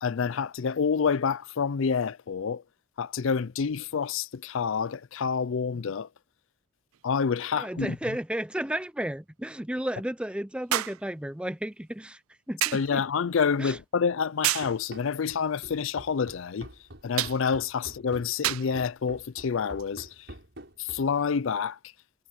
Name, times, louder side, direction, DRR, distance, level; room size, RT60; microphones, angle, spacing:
voice 1, 0.0-2.6 3.0-6.1 7.0-8.0 12.7-16.7 17.0-20.3 20.8-21.8, left 6 dB, 65° left, 0.4 m, -28 dB
sound 1, 6.9-7.0 10.7-11.1 12.6-12.9 14.4-14.8 17.2-17.4 18.4-18.7 19.8-19.9, right 15 dB, 75° right, 0.4 m, -28 dB
voice 2, 7.6-12.2 12.5-13.0 13.6-13.8, right 1 dB, 5° right, 0.5 m, -33 dB
Run, 14.6-21.2, right 1 dB, 55° right, 7.3 m, -46 dB
head